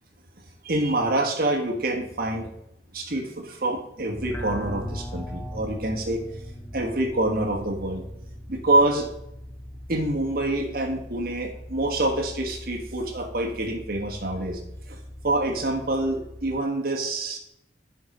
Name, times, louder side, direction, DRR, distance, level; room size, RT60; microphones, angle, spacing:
voice 1, 0.6-2.5 2.9-6.2 6.7-8.0 8.5-9.1 9.9-14.6 14.9-15.0 15.2-17.4, right 2 dB, 55° right, 2 dB, 1.5 m, -26 dB
sound 1, 4.1-16.6, equal, 10° left, 0.5 m, -40 dB
9.7 x 5.2 x 5.2 m, 0.77 s
head